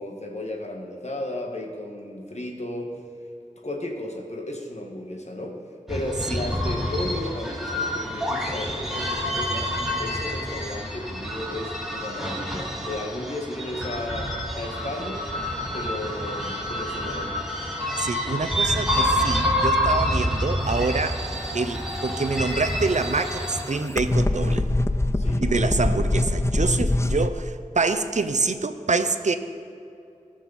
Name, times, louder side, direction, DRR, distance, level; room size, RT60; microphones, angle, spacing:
voice 1, 0.0-3.0 3.6-5.6 5.9-14.3 14.5-15.3 15.7-17.3 25.1-25.5, left 1 dB, 60° left, 1 dB, 1.8 m, -34 dB
sound 1, 5.9-23.6, equal, 5° right, 2.5 m, -28 dB
voice 2, 17.9-21.2 21.5-24.7 25.4-29.3, right 3 dB, 65° right, 10 dB, 0.7 m, -26 dB
sound 2, 22.1-27.3, left 2 dB, 20° left, 0.6 m, -24 dB
19.0 x 6.4 x 4.3 m, 2.6 s
wide cardioid pair, 40°, 13 cm